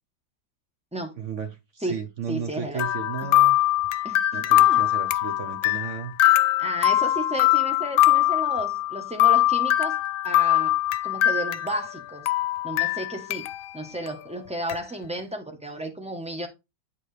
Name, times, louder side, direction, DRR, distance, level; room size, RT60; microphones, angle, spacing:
voice 1, 1.2-3.6 4.3-6.1, right 7 dB, 55° right, 0.9 m, -34 dB
voice 2, 1.8-2.8 3.2-3.3 4.0-4.8 6.6-10.0 10.2-10.8 11.0-12.3 12.6-13.5 13.7-16.5, right 1 dB, 5° right, 0.6 m, -33 dB
sound 1, 2.8-12.0 12.3-13.7 14.1-14.2 14.7-14.8, left 14 dB, 80° left, 1.3 m, -22 dB
9.0 x 4.6 x 3.3 m
omnidirectional pair, 2.0 m